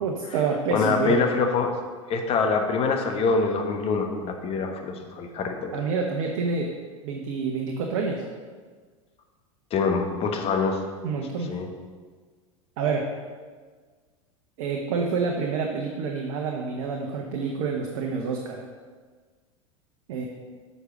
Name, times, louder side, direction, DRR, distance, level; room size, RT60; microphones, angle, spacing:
voice 1, 0.0-1.2 5.7-6.7 7.0-8.2 11.0-11.5 12.8-13.1 14.6-18.6 20.1-20.3, right 5 dB, 55° right, 1 dB, 1.0 m, -28 dB
voice 2, 0.7-1.7 2.1-5.7 9.7-10.8 11.5-11.7, left 4 dB, 35° left, 4 dB, 1.2 m, -25 dB
8.0 x 5.5 x 6.1 m, 1.5 s
figure-of-eight pair, 85°, 17 cm